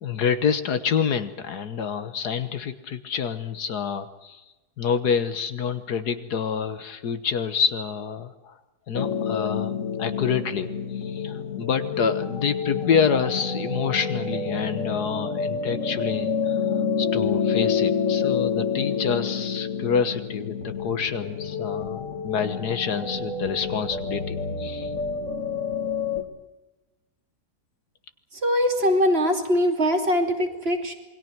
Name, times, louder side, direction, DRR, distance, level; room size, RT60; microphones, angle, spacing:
voice 1, 0.0-4.4 4.8-8.5 8.9-24.9, left 6 dB, 70° left, 10 dB, 1.8 m, -27 dB
sound 1, 8.9-26.2, left 6 dB, 50° left, 2.5 m, -28 dB
voice 2, 28.4-30.9, equal, 35° right, 5 dB, 2.9 m, -22 dB
27.5 x 21.5 x 6.1 m, 1.1 s
omnidirectional pair, 1.8 m